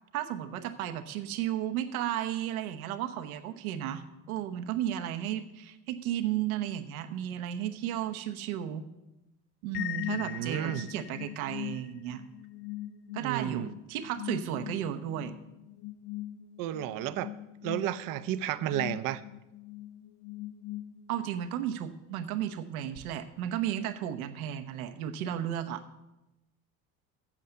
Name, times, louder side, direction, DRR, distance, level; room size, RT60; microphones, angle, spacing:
voice 1, 0.1-8.8 9.6-12.2 13.1-15.3 21.1-25.8, right 11 dB, 80° right, 8 dB, 1.0 m, -34 dB
sound 1, 9.7-21.4, left 14 dB, 65° left, 0.7 m, -41 dB
voice 2, 10.1-10.8 13.2-13.7 16.6-17.3 17.6-19.2, right 12 dB, 50° right, 13 dB, 0.7 m, -32 dB
8.6 x 7.3 x 7.9 m, 0.93 s
hypercardioid pair, 75°, 43 cm